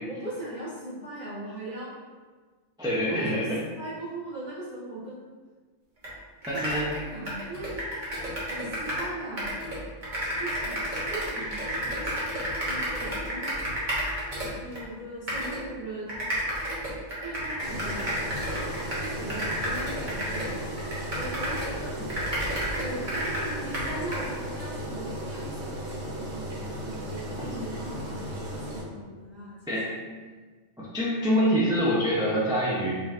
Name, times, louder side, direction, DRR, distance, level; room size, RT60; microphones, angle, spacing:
voice 1, 0.1-1.9 3.0-5.3 6.5-6.7 6.9-7.7 8.5-9.6 10.4-10.7 11.1-12.3 12.6-13.5 14.5-16.3 17.2-18.0 19.0-20.8 21.1-21.9 22.8-28.2 28.5-29.6, right 1 dB, 35° left, -11 dB, 1.7 m, -39 dB
voice 2, 2.8-3.6 6.5-7.1 22.0-22.1 27.4-27.7 29.7-30.0 30.8-32.9, equal, 5° right, -7 dB, 0.4 m, -26 dB
sound 1, 6.0-6.1 6.4-9.1 9.4-14.8 15.3-15.6 16.1-21.8 22.1-24.3, equal, 45° right, 1.1 m, -31 dB
Engine, 17.6-28.8, right 1 dB, 80° right, 1.0 m, -36 dB
4.8 x 2.9 x 2.5 m, 1.4 s
omnidirectional pair, 1.2 m